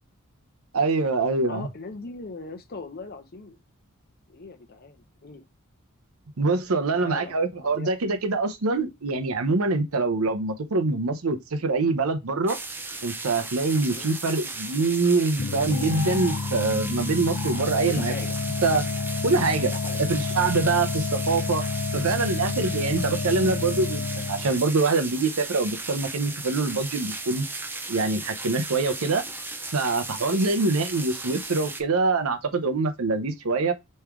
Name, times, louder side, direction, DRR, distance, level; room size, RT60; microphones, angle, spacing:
voice 1, 0.7-1.7 6.4-12.6 13.0-18.1 18.6-18.8 19.2-19.7 20.1-21.6 21.9-24.0 24.3-27.5 27.9-29.2 29.7-33.7, right 3 dB, 80° right, 0.7 m, -24 dB
voice 2, 1.4-3.6 4.3-5.4 6.9-7.3 7.6-7.9 13.9-14.2 17.8-18.4 19.7-20.1 30.3-30.5, left 3 dB, 45° left, 0.8 m, -39 dB
sound 1, 12.5-31.8, right 3 dB, 10° right, 0.5 m, -36 dB
sound 2, 15.4-24.6, left 4 dB, 75° left, 0.5 m, -29 dB
3.6 x 3.2 x 4.6 m
head